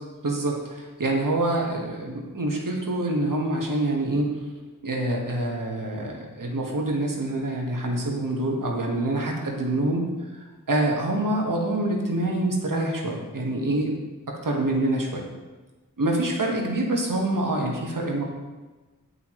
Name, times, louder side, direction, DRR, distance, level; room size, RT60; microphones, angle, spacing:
voice 1, 0.2-4.3 4.8-10.0 10.4-13.9 14.3-15.2 16.0-18.2, right 1 dB, 75° right, 0 dB, 1.6 m, -26 dB
8.4 x 8.2 x 3.1 m, 1.2 s
wide cardioid pair, 45°, 33 cm